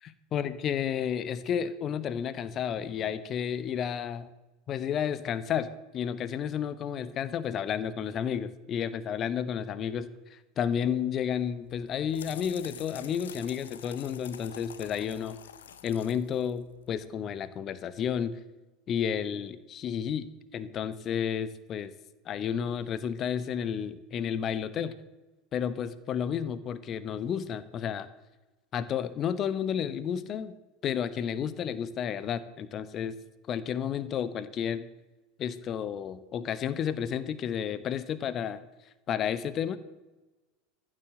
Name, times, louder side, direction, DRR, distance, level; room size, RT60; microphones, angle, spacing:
voice 1, 0.3-4.3 4.7-15.4 15.8-18.3 18.9-21.9 22.2-24.9 25.5-28.1 28.7-30.6 30.8-33.2 33.5-34.9 35.4-38.6 39.1-39.8, left 8 dB, 35° left, 15 dB, 1.0 m, -31 dB
sound 1, 11.6-17.2, left 9 dB, 70° left, 0.9 m, -48 dB
14.5 x 7.8 x 7.7 m, 1.1 s
figure-of-eight pair, 80°, 0 cm